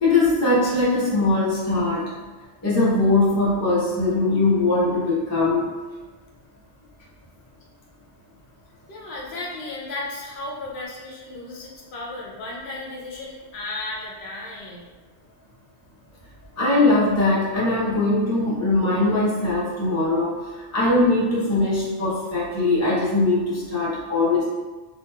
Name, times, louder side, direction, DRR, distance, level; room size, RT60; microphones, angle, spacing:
voice 1, 0.0-2.0 2.6-5.7 16.6-20.3 20.7-24.4, left 2 dB, 20° left, -8 dB, 0.5 m, -21 dB
voice 2, 8.9-14.9, left 2 dB, 70° left, -3 dB, 0.8 m, -34 dB
2.8 x 2.6 x 2.3 m, 1.2 s
omnidirectional pair, 1.1 m